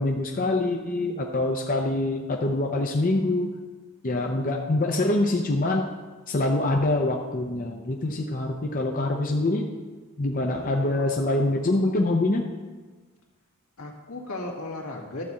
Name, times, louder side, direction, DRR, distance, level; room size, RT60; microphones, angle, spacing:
voice 1, 0.0-3.5 4.0-5.9 6.3-9.7 10.2-12.4, left 2 dB, 40° left, 1 dB, 0.6 m, -25 dB
voice 2, 10.5-11.1 13.8-15.2, left 2 dB, 80° left, -1 dB, 1.9 m, -36 dB
12.0 x 4.2 x 7.5 m, 1.3 s
head